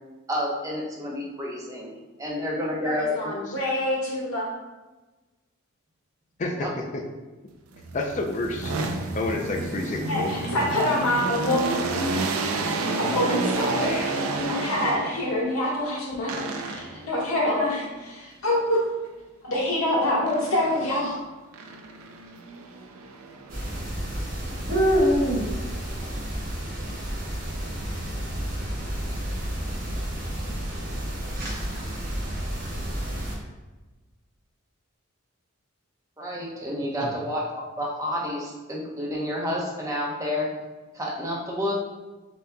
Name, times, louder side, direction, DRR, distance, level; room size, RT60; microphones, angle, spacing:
voice 1, 0.3-1.9 2.2-3.3 6.6-6.7 36.2-37.4 37.8-40.5 40.9-41.7, left 1 dB, 15° right, -4 dB, 0.8 m, -29 dB
voice 2, 2.8-4.5 10.1-11.6 13.0-18.8 19.4-21.1, left 1 dB, 80° left, -4 dB, 1.4 m, -26 dB
sound 1, 7.8-15.4 16.3-17.1 20.3-21.1 21.5-23.9, right 3 dB, 85° right, 0.5 m, -30 dB
voice 3, 7.9-8.8 9.1-10.3 37.0-37.1, left 2 dB, 35° left, 2 dB, 0.4 m, -29 dB
sound 2, 23.5-33.4, equal, 40° right, 1.3 m, -28 dB
7.2 x 2.9 x 2.2 m, 1.2 s
head